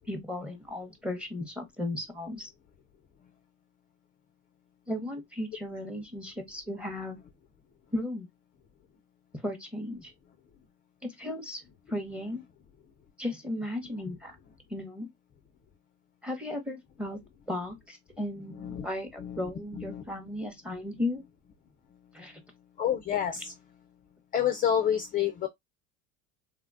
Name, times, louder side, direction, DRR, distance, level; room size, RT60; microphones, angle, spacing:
voice 1, 0.1-2.5 4.9-7.2 7.9-8.3 9.4-10.1 11.0-11.6 11.9-12.4 13.2-14.4 14.7-15.1 16.2-17.2 17.5-21.2 22.1-22.4, left 1 dB, 5° right, 0.7 m, -35 dB
voice 2, 18.5-18.9 19.2-19.4 19.7-20.0 22.8-23.5 24.3-25.5, left 9 dB, 25° left, 0.3 m, -28 dB
3.2 x 2.1 x 2.4 m
supercardioid pair, 105°, 37 cm